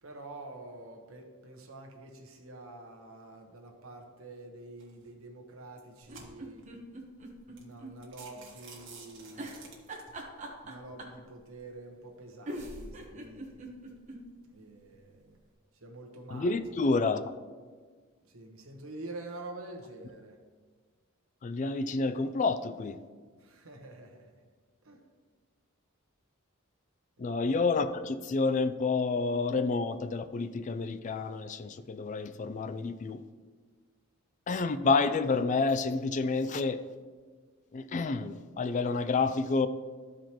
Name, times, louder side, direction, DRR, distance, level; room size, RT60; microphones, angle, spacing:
voice 1, 0.0-6.7 7.6-9.5 10.6-13.6 14.5-15.4 15.7-16.5 18.2-20.4 23.4-24.3 24.8-25.0 27.2-27.4, right 2 dB, 80° right, 2 dB, 1.2 m, -47 dB
sound 1, 4.8-5.1 5.7-6.7 7.2-7.3 7.6-7.7 8.0-10.2, right 4 dB, 60° right, 1.6 m, -51 dB
sound 2, 6.0-7.9 8.3-8.4 9.4-11.2 12.1-12.2 12.5-14.2 14.6-14.7 14.9-15.0, right 1 dB, 35° right, 1.1 m, -42 dB
voice 2, 16.3-17.3 21.4-23.0 27.2-33.2 34.5-36.8 37.7-39.7, left 4 dB, 35° left, 11 dB, 0.3 m, -29 dB
12.5 x 4.9 x 3.0 m, 1.5 s
head